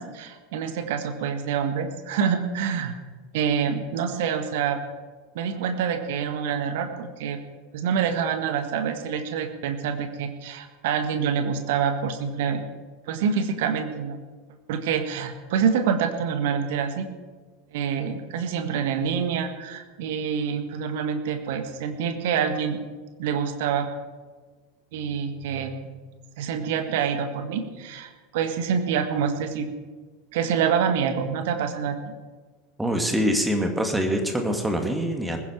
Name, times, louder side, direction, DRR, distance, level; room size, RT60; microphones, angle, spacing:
voice 1, 0.0-2.9 3.3-4.8 5.3-7.4 7.7-12.6 13.1-14.2 14.7-17.1 17.7-22.8 23.2-23.9 24.9-25.8 26.4-29.7 30.3-32.1, right 7 dB, 60° right, 7 dB, 1.7 m, -26 dB
voice 2, 32.8-35.4, equal, 5° right, 4 dB, 2.2 m, -24 dB
20.5 x 10.5 x 4.6 m, 1.4 s
figure-of-eight pair, 80°, 0 cm